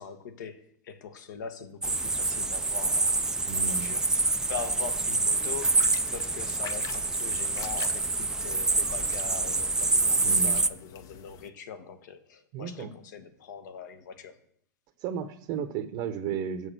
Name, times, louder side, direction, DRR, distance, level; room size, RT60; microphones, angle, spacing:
voice 1, 0.0-3.2 3.5-14.4, left 6 dB, 70° left, 9 dB, 1.2 m, -42 dB
sound 1, 1.8-10.7, right 3 dB, 5° right, 0.3 m, -27 dB
voice 2, 3.5-4.0 10.2-10.6 12.5-12.9 15.0-16.7, right 7 dB, 50° right, 8 dB, 0.8 m, -34 dB
sound 2, 5.3-11.5, left 9 dB, 35° left, 0.6 m, -45 dB
7.1 x 6.3 x 6.7 m, 0.66 s
hypercardioid pair, 110°, 10 cm